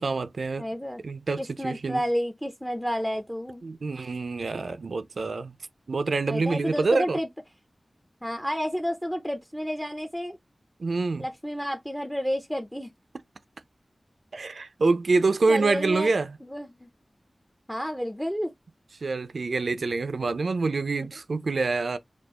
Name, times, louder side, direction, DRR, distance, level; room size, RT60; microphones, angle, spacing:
voice 1, 0.0-0.7 1.0-2.0 3.6-5.5 5.9-7.2 10.8-11.3 14.3-16.4 19.0-22.0, right 3 dB, 85° right, 0.4 m, -26 dB
voice 2, 0.6-1.0 1.4-3.6 6.3-7.3 8.2-10.4 11.2-12.9 15.5-16.1 16.4-16.9 17.7-18.5 21.0-21.1, equal, 5° left, 0.5 m, -30 dB
4.3 x 2.4 x 2.8 m
wide cardioid pair, 70°, 0 cm